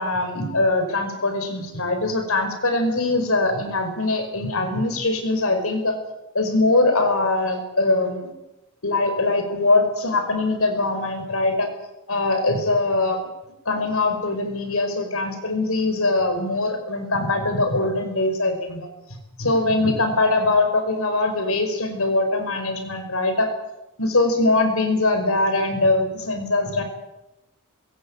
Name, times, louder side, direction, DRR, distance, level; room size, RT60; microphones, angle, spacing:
voice 1, 0.0-6.0 6.3-8.3 8.8-11.7 12.1-13.2 13.6-18.9 19.4-23.5 24.0-26.8, left 2 dB, 70° left, 7 dB, 5.1 m, -22 dB
22.0 x 16.5 x 8.8 m, 0.94 s
head